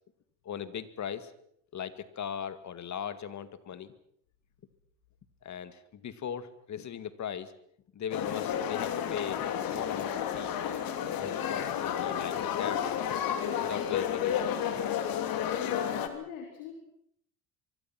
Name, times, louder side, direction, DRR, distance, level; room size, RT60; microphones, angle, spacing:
voice 1, 0.5-1.3 1.7-3.9 5.4-7.5 7.9-10.5 11.2-13.0 13.6-14.5, left 8 dB, 50° left, 13 dB, 2.1 m, -39 dB
sound 1, 8.1-16.1, left 9 dB, 65° left, 3.0 m, -31 dB
voice 2, 15.6-16.7, left 9 dB, 90° left, 2 dB, 4.3 m, -43 dB
24.5 x 24.0 x 6.0 m, 0.69 s
supercardioid pair, 90°, 38 cm